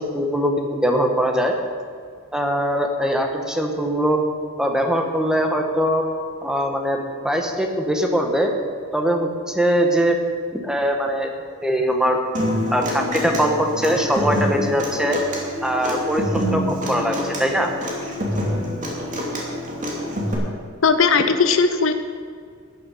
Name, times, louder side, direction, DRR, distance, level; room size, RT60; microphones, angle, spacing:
voice 1, 0.0-1.5 2.3-4.2 4.6-6.0 6.4-7.0 7.2-8.5 8.9-10.2 10.5-11.3 11.6-12.2 12.7-15.2 15.6-17.7, equal, 5° right, 3 dB, 1.2 m, -21 dB
Human voice / Acoustic guitar, 12.3-20.3, equal, 35° right, 2.7 m, -26 dB
voice 2, 20.8-21.9, left 5 dB, 65° left, 8 dB, 0.7 m, -17 dB
13.5 x 10.0 x 5.6 m, 2.1 s
head